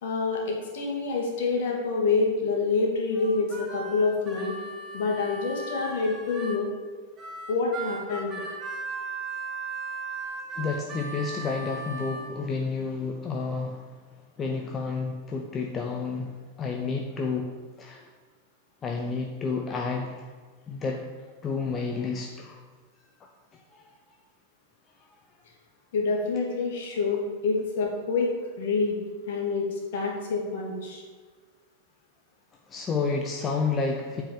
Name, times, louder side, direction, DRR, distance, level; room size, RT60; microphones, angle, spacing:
voice 1, 0.0-4.6 4.9-6.7 7.5-8.3 25.9-28.3 28.6-29.0 29.3-29.7 29.9-31.0, left 4 dB, 55° left, -1 dB, 2.4 m, -27 dB
Harmonica, 3.1-6.6 7.2-12.3, right 3 dB, 20° right, 1.8 m, -37 dB
voice 2, 10.6-13.9 14.4-18.1 18.8-20.3 20.7-21.1 21.4-22.6 23.5-23.8 32.7-34.2, left 4 dB, 25° left, 1 dB, 0.9 m, -30 dB
8.8 x 4.9 x 7.3 m, 1.5 s
figure-of-eight pair, 90°, 0 cm